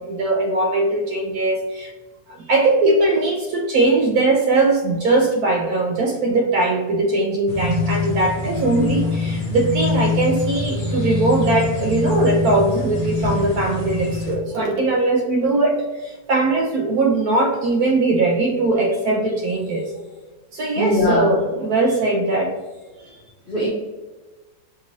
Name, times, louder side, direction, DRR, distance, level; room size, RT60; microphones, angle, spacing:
voice 1, 0.0-1.9 2.3-19.8 20.5-22.5, right 2 dB, 70° right, 2 dB, 0.9 m, -20 dB
sound 1, 7.5-14.3, left 3 dB, 30° left, 0.7 m, -24 dB
voice 2, 20.8-21.4 23.0-23.2 23.5-23.7, left 1 dB, 70° left, -4 dB, 0.5 m, -22 dB
5.2 x 2.9 x 2.7 m, 1.3 s
omnidirectional pair, 2.0 m